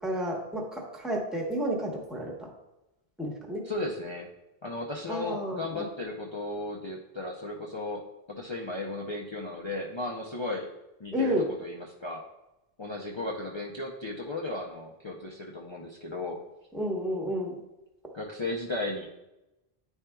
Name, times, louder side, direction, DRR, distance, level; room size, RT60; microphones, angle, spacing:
voice 1, 0.0-2.5 3.2-3.6 5.1-5.8 11.1-11.5 16.7-17.6, equal, ahead, -1 dB, 1.0 m, -31 dB
voice 2, 3.6-4.3 4.6-10.7 11.0-12.2 12.8-16.4 18.1-19.1, left 2 dB, 35° left, -2 dB, 0.5 m, -35 dB
10.0 x 4.4 x 2.3 m, 0.96 s
omnidirectional pair, 1.0 m